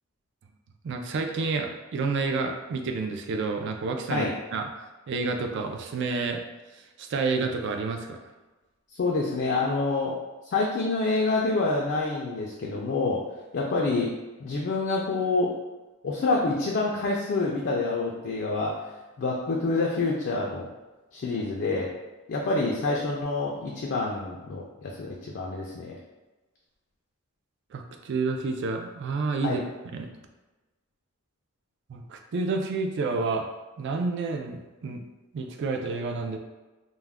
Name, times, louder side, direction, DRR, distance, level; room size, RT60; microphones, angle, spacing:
voice 1, 0.8-4.7 5.1-6.4 7.0-8.2 27.7-29.6 29.9-30.1 31.9-33.5 33.8-35.0 35.3-36.4, right 4 dB, 55° right, 4 dB, 0.3 m, -29 dB
voice 2, 9.0-10.1 10.4-13.3 13.5-14.1 14.4-15.5 16.0-18.8 19.2-20.7 21.1-21.9 22.3-26.0 29.4-29.6, left 3 dB, 50° left, -2 dB, 0.4 m, -27 dB
2.3 x 2.1 x 3.3 m, 1.2 s
head